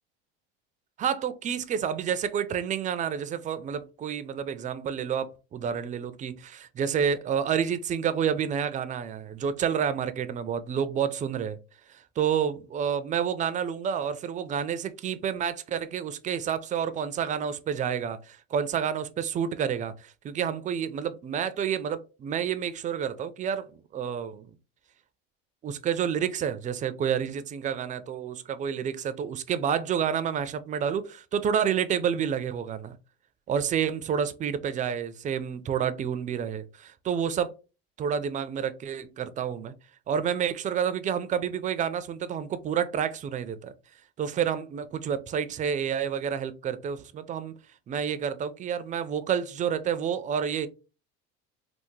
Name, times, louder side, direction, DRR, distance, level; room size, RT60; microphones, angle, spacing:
voice 1, 1.0-11.6 11.9-24.5 25.6-33.0 33.5-37.5 38.0-39.7 40.1-43.7 44.2-47.5 47.9-50.7, right 8 dB, 25° right, 0.3 m, -29 dB
3.4 x 2.0 x 3.1 m
supercardioid pair, 100°, 30 cm